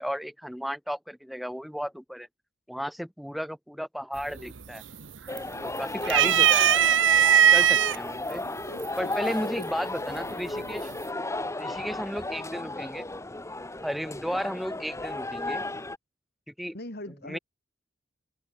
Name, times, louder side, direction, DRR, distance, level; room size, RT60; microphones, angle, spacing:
voice 1, 0.0-2.3 2.7-4.8 5.6-6.7 7.5-8.4 9.0-10.9 11.6-13.1 13.8-15.6 16.5-16.8 17.2-17.4, equal, ahead, 3.7 m, -34 dB
sound 1, 4.2-4.6 4.9-5.6 6.0-8.0 8.8-8.9 10.2-10.6, right 9 dB, 70° right, 1.0 m, -19 dB
sound 2, 5.3-16.0, left 2 dB, 15° left, 1.5 m, -34 dB
voice 2, 8.7-9.7 16.7-17.4, left 1 dB, 55° left, 4.8 m, -41 dB
head